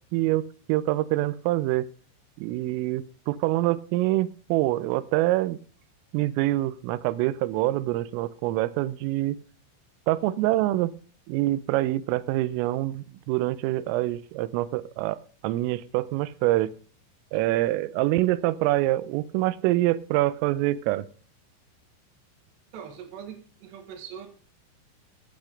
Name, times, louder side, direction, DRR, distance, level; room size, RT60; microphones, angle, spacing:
voice 1, 0.1-1.9 2.4-5.6 6.1-9.4 10.1-10.9 11.3-16.7 17.3-21.1, right 16 dB, 85° right, 18 dB, 3.3 m, -25 dB
voice 2, 22.7-24.3, right 8 dB, 65° right, 7 dB, 3.6 m, -42 dB
14.0 x 8.6 x 5.1 m, 0.40 s
omnidirectional pair, 5.8 m